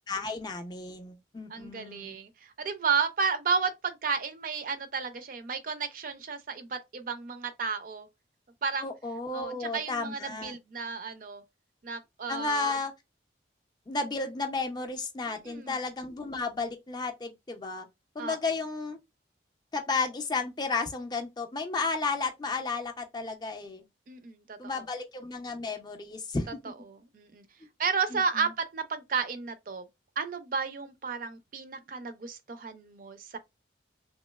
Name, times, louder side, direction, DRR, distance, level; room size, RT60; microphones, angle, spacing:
voice 1, 0.1-2.2 8.8-10.6 12.3-12.9 13.9-17.9 18.1-19.0 19.7-23.8 24.6-26.5 28.1-28.5, left 4 dB, 25° left, 0.4 m, -33 dB
voice 2, 1.5-8.1 8.6-8.9 9.3-11.4 11.8-12.8 15.4-15.7 18.2-18.4 24.1-24.8 26.9-27.4 27.8-29.9 30.2-33.4, right 5 dB, 50° right, 0.4 m, -32 dB
3.0 x 2.7 x 2.2 m
head